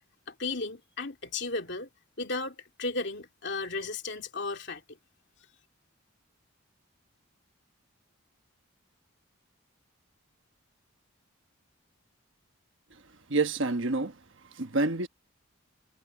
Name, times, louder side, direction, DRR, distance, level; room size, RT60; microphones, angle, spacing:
voice 1, 0.3-1.9 2.2-5.0, left 3 dB, 55° left, 2.7 m, -35 dB
voice 2, 13.3-14.2 14.5-15.1, right 3 dB, 60° right, 1.2 m, -28 dB
head